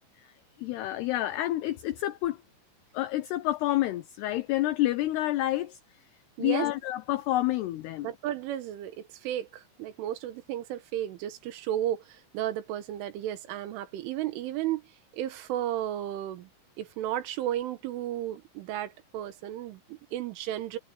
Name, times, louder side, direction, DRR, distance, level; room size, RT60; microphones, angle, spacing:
voice 1, 0.6-2.4 2.9-5.8 6.4-8.1, left 15 dB, 85° left, 2.3 m, -28 dB
voice 2, 8.0-14.8 15.1-16.5 16.8-20.8, right 12 dB, 80° right, 3.8 m, -33 dB
omnidirectional pair, 5.6 m